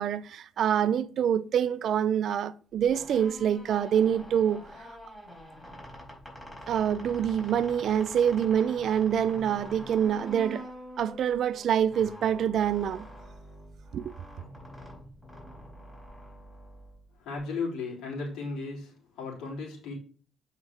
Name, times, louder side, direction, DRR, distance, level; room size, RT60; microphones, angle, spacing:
voice 1, 0.0-4.7 6.7-10.7 11.0-13.0 13.9-14.0, right 9 dB, 70° right, 0.5 m, -26 dB
sound 1, 2.8-17.4, equal, 10° left, 4.0 m, -45 dB
voice 2, 17.2-19.9, left 4 dB, 85° left, 3.5 m, -35 dB
8.0 x 5.5 x 3.6 m
cardioid pair, 90°, 0 cm